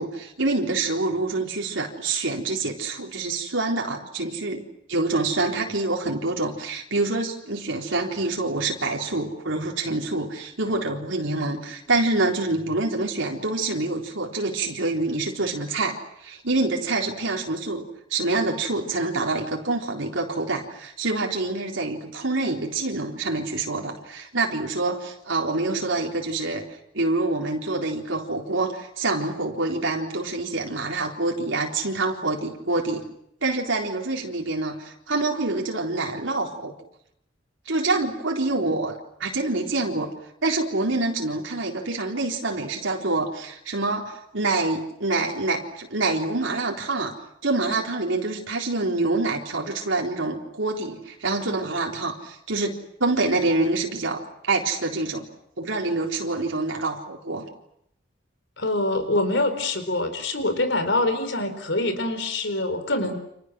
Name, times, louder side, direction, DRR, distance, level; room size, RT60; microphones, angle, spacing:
voice 1, 0.0-17.8 18.1-26.6 26.9-33.1 33.4-36.7 37.7-38.9 39.2-40.1 40.4-47.1 47.4-55.3 55.6-57.4, right 2 dB, 85° right, -1 dB, 4.0 m, -26 dB
voice 2, 58.6-63.2, left 2 dB, 80° left, 9 dB, 4.3 m, -25 dB
30.0 x 27.5 x 6.3 m, 0.74 s
head